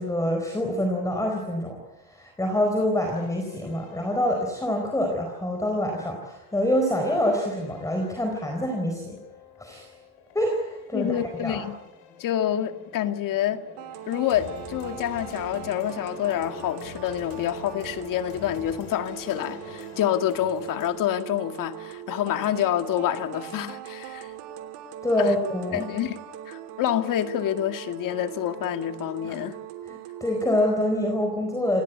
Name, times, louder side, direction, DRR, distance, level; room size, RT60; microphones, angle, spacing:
voice 1, 0.0-9.2 9.6-9.9 10.3-11.6 25.0-25.9 29.2-29.4 29.8-31.8, left 1 dB, 10° left, 4.2 m, -26 dB
sound 1, 3.1-20.9, left 5 dB, 80° left, 6.2 m, -47 dB
voice 2, 10.9-11.8 12.2-13.7 14.1-24.3 25.2-25.4 25.7-26.2 26.5-29.6, left 11 dB, 50° left, 2.1 m, -27 dB
sound 2, 13.8-30.8, right 11 dB, 75° right, 3.2 m, -41 dB
28.0 x 18.0 x 9.5 m
cardioid pair, 150°, 42 cm